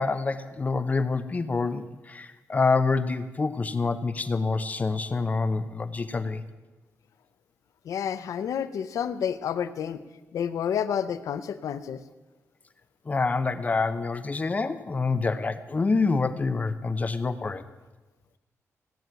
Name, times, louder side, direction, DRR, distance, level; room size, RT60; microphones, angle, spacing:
voice 1, 0.0-6.4 13.1-17.6, left 4 dB, 30° left, 11 dB, 0.8 m, -27 dB
voice 2, 7.9-10.0 10.3-12.0, left 8 dB, 85° left, 13 dB, 0.7 m, -29 dB
17.0 x 9.2 x 9.1 m, 1.1 s
wide cardioid pair, 135°, 6 cm